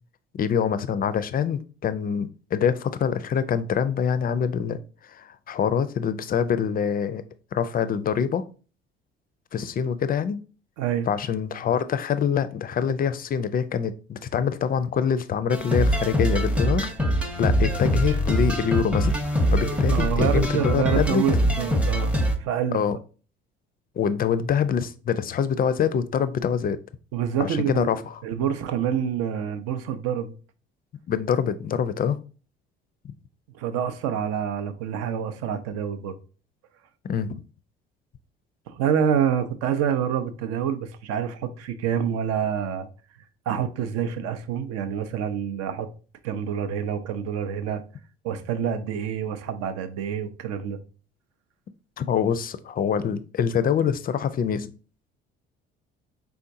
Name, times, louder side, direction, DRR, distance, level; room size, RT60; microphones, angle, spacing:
voice 1, 0.3-4.8 5.1-7.2 7.5-8.4 9.5-10.4 11.1-16.9 17.4-19.1 19.5-21.2 22.7-23.0 24.0-26.8 27.4-28.2 31.1-32.2 37.1-37.3 52.0-54.7, left 7 dB, 30° left, 0.4 m, -25 dB
voice 2, 10.8-11.1 19.9-22.1 22.4-22.8 27.1-30.3 33.6-36.1 38.7-42.9 43.5-45.9 46.2-47.8 48.2-50.8, right 8 dB, 55° right, 0.6 m, -27 dB
sound 1, 15.5-22.4, equal, 5° right, 0.7 m, -23 dB
4.4 x 3.5 x 2.6 m
figure-of-eight pair, 55°, 30 cm